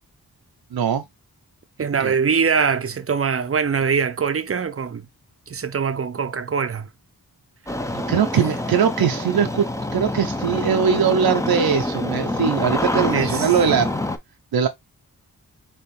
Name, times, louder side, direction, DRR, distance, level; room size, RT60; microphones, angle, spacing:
voice 1, 0.7-1.0 2.0-2.1 7.9-9.6 9.9-13.9 14.5-14.7, right 7 dB, 75° right, 0.7 m, -21 dB
voice 2, 1.8-5.0 5.5-6.9 13.1-13.5, right 6 dB, 40° right, 0.6 m, -22 dB
Engine starting, 7.7-14.2, left 1 dB, 10° left, 0.6 m, -26 dB
4.4 x 3.0 x 3.2 m
wide cardioid pair, 90°, 37 cm